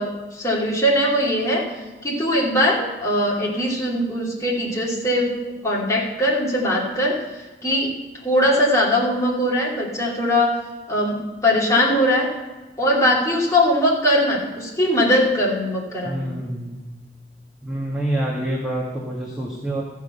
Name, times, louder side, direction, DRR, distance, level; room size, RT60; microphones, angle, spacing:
voice 1, 0.0-1.7 2.0-5.3 5.6-7.2 7.6-7.9 8.2-10.6 10.9-12.3 12.8-16.4, left 1 dB, 20° left, -4 dB, 2.8 m, -20 dB
voice 2, 16.0-16.8 17.6-19.8, right 1 dB, 5° right, -5 dB, 1.8 m, -27 dB
14.5 x 7.3 x 5.6 m, 1.2 s
head